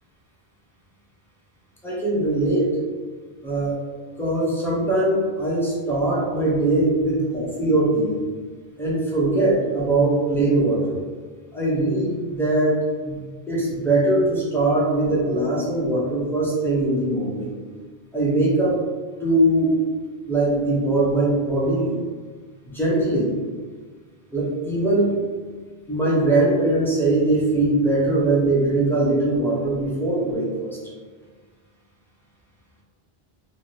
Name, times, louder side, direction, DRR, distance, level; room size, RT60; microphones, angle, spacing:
voice 1, 1.8-2.7 3.4-3.8 4.2-8.2 8.8-11.0 11.5-12.8 13.0-13.2 13.5-17.5 18.1-18.8 19.2-19.7 20.3-21.9 22.7-23.3 24.3-25.1 25.9-30.8, right 2 dB, 5° left, -7 dB, 0.5 m, -21 dB
2.5 x 2.2 x 3.3 m, 1.5 s
omnidirectional pair, 1.0 m